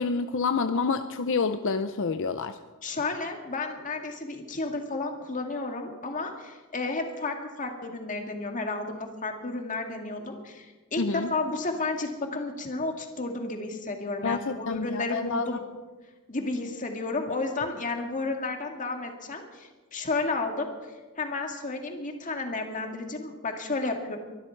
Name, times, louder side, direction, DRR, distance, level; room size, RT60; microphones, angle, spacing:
voice 1, 0.0-2.6 11.0-11.3 14.2-15.4, left 4 dB, 60° left, 9 dB, 0.6 m, -28 dB
voice 2, 2.8-15.6 16.3-20.7 21.2-24.2, left 3 dB, 35° left, 3 dB, 2.0 m, -32 dB
23.5 x 12.0 x 4.6 m, 1.3 s
head